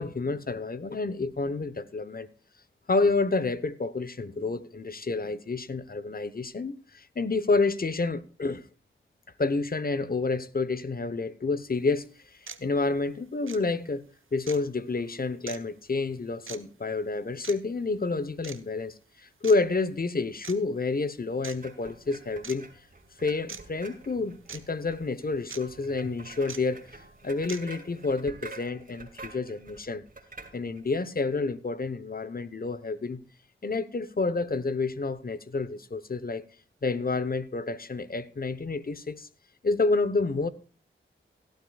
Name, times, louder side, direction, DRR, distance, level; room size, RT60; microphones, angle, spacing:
voice 1, 0.0-2.3 2.9-8.6 9.4-22.7 23.2-30.0 30.5-33.2 33.6-36.4 36.8-39.3 39.6-40.5, left 3 dB, 45° left, 0.9 m, -29 dB
sound 1, 11.7-11.8 12.5-12.6 13.4-13.6 14.5-14.6 15.5-15.6 16.5-16.6 17.4-17.6 18.4-18.6 19.4-19.6 20.4-20.5 21.4-21.6 22.4-22.6 23.5-23.6 24.5-24.6 25.5-25.6 26.5-26.6 27.5-27.6, right 6 dB, 75° right, 0.9 m, -40 dB
sound 2, 21.6-30.9, right 3 dB, 40° right, 2.3 m, -48 dB
17.0 x 12.0 x 2.4 m
cardioid pair, 45°, 21 cm